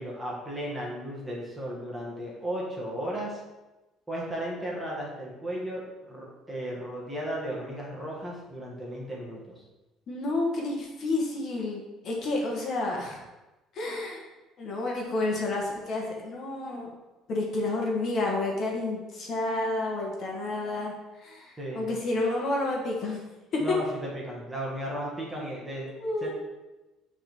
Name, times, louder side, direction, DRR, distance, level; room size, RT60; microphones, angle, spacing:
voice 1, 0.0-3.4 4.1-9.6 21.6-21.9 23.6-23.8 24.1-25.9 26.2-26.3, right 1 dB, 5° right, -4 dB, 1.4 m, -35 dB
voice 2, 10.1-13.2 13.7-14.2 14.6-16.9 17.3-23.2 23.5-23.6 26.0-26.3, left 2 dB, 40° left, -1 dB, 1.3 m, -30 dB
8.8 x 3.6 x 4.5 m, 1.1 s
cardioid pair, 170°, 0 cm